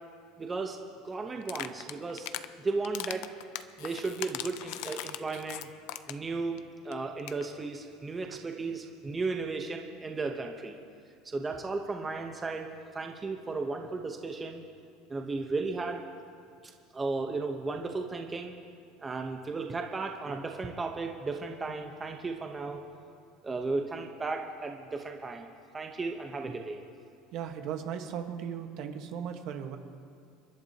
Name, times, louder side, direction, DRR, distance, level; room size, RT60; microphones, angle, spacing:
voice 1, 0.4-0.8 1.0-2.3 2.6-3.3 3.8-5.7 6.1-10.8 11.2-14.6 15.1-16.0 16.9-18.5 19.0-22.8 23.4-26.8, right 3 dB, 20° right, 3 dB, 0.9 m, -35 dB
sound 1, 1.4-2.5 2.8-6.3 6.6-6.7 6.9-7.0 7.2-7.4, left 14 dB, 70° left, 0.6 m, -39 dB
voice 2, 27.3-29.8, right 8 dB, 55° right, 5 dB, 1.3 m, -37 dB
30.0 x 11.5 x 2.9 m, 2.4 s
supercardioid pair, 130°, 0 cm